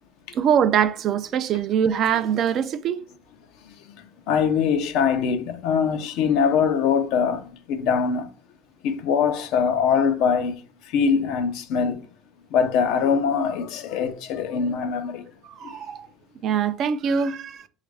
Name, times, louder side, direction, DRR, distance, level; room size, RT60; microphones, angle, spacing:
voice 1, 0.3-3.0 15.4-16.1 16.4-17.6, right 8 dB, 50° right, 0.4 m, -23 dB
voice 2, 4.3-8.3 8.8-10.6 10.9-12.0 12.5-15.3 15.6-15.7, left 6 dB, 70° left, 0.5 m, -22 dB
5.0 x 2.4 x 3.3 m
supercardioid pair, 105°, 0 cm